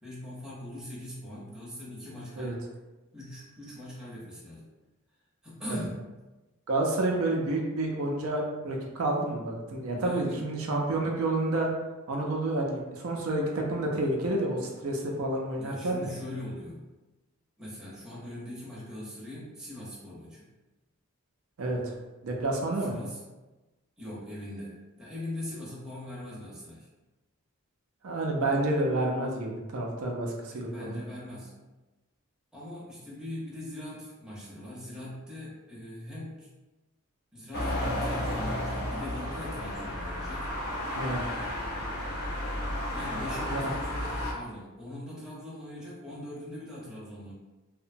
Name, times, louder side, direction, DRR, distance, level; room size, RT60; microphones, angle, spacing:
voice 1, 0.0-2.6 3.1-4.6 5.4-6.0 9.9-10.4 15.6-16.8 17.6-20.5 22.8-23.2 24.0-26.9 30.4-31.5 32.5-36.5 37.3-40.6 42.9-47.3, left 1 dB, 5° right, -8 dB, 0.7 m, -41 dB
voice 2, 6.7-11.7 12.1-16.1 21.6-21.9 22.2-22.9 28.0-31.0 41.0-41.3 43.5-43.7, right 2 dB, 70° right, 0 dB, 0.4 m, -29 dB
sound 1, 37.5-44.3, left 1 dB, 45° left, 0.5 m, -32 dB
2.8 x 2.1 x 2.5 m, 1.1 s
head